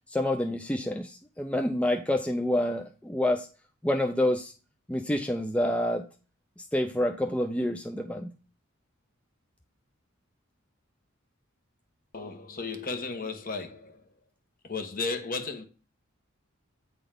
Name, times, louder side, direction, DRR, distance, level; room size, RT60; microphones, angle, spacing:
voice 1, 0.1-3.5 3.8-4.5 4.9-6.1 6.6-8.3, left 1 dB, 5° left, 0.5 m, -28 dB
voice 2, 12.1-14.0 14.6-15.6, left 4 dB, 45° left, 1.3 m, -34 dB
8.8 x 4.1 x 5.2 m
head